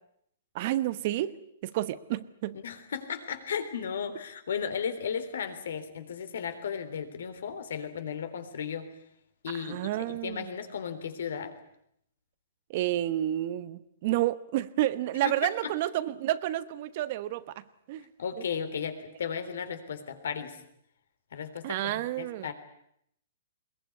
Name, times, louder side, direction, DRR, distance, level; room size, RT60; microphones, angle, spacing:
voice 1, 0.5-2.6 9.5-10.5 12.7-18.0 18.4-18.5 21.6-22.5, right 14 dB, 45° right, 15 dB, 1.1 m, -30 dB
voice 2, 2.6-8.9 9.4-11.5 15.2-15.3 18.2-20.6 21.3-22.5, left 7 dB, 75° left, 9 dB, 3.7 m, -35 dB
21.5 x 20.5 x 9.5 m, 0.73 s
hypercardioid pair, 155°, 0 cm